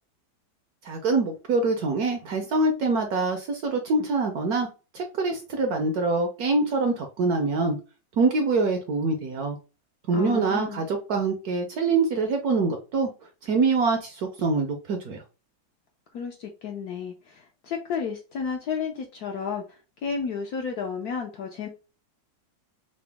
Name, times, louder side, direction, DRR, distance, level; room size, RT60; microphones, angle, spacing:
voice 1, 0.8-4.7 4.9-7.8 8.2-9.6 10.1-13.1 13.4-15.2, right 3 dB, 65° right, 4 dB, 1.0 m, -25 dB
voice 2, 10.1-10.8 16.1-21.7, left 6 dB, 70° left, 2 dB, 0.9 m, -32 dB
3.9 x 2.1 x 3.3 m, 0.31 s
omnidirectional pair, 2.2 m